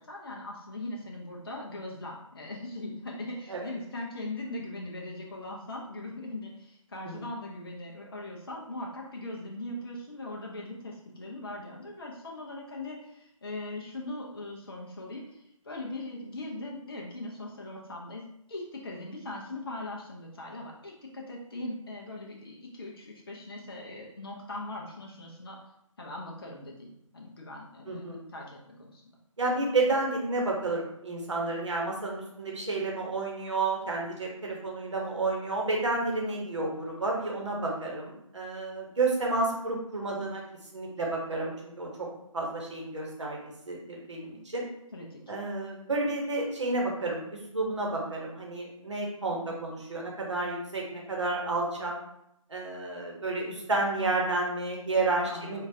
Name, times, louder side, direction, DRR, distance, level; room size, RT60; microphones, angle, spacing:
voice 1, 0.0-25.6 26.0-29.0 44.9-45.2 55.2-55.7, left 2 dB, 45° left, -1 dB, 0.5 m, -40 dB
voice 2, 27.9-28.2 29.4-40.4 40.7-42.1 42.3-43.4 43.7-44.7 45.3-52.0 52.5-55.7, right 2 dB, 60° right, -1 dB, 0.9 m, -31 dB
3.7 x 2.4 x 2.7 m, 0.78 s
figure-of-eight pair, 150°, 17 cm